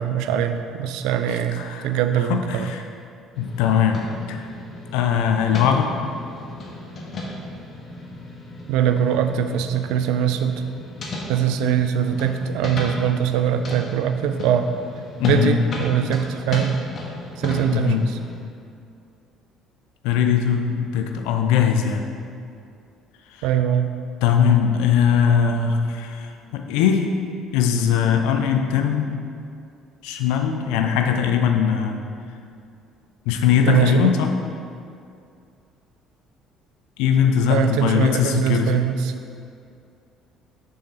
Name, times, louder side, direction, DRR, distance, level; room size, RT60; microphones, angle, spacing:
voice 1, 0.0-2.7 8.7-10.6 11.3-14.7 15.2-16.7 17.4-18.0 23.4-23.9 33.7-34.1 37.5-39.1, right 9 dB, 65° right, 8 dB, 0.3 m, -22 dB
voice 2, 1.3-1.9 2.2-2.8 3.4-4.0 4.3-4.5 4.9-5.9 15.2-15.6 17.7-18.0 20.0-22.0 24.2-27.1 27.5-29.2 30.0-32.0 33.3-34.3 37.0-38.7, left 8 dB, 65° left, 4 dB, 0.5 m, -20 dB
sound 1, 3.3-18.4, left 1 dB, 40° left, 1.1 m, -34 dB
6.9 x 5.5 x 3.2 m, 2.5 s
figure-of-eight pair, 50°, 0 cm